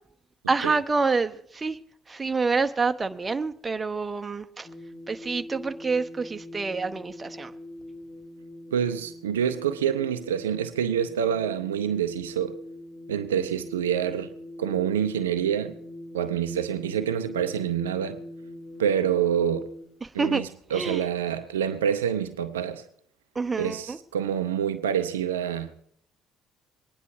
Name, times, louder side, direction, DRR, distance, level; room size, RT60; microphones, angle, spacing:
voice 1, 0.5-1.8 2.1-4.7 5.1-7.5 20.0-20.4 20.7-21.0 23.3-24.0, right 4 dB, 25° right, 1.0 m, -27 dB
sound 1, 4.6-19.8, left 1 dB, 60° left, 6.0 m, -42 dB
voice 2, 8.7-12.6 13.1-14.3 14.6-15.8 16.1-18.2 18.8-19.7 20.1-22.8 23.6-25.8, right 9 dB, 85° right, 0.7 m, -27 dB
22.5 x 10.0 x 4.8 m
hypercardioid pair, 50°, 0 cm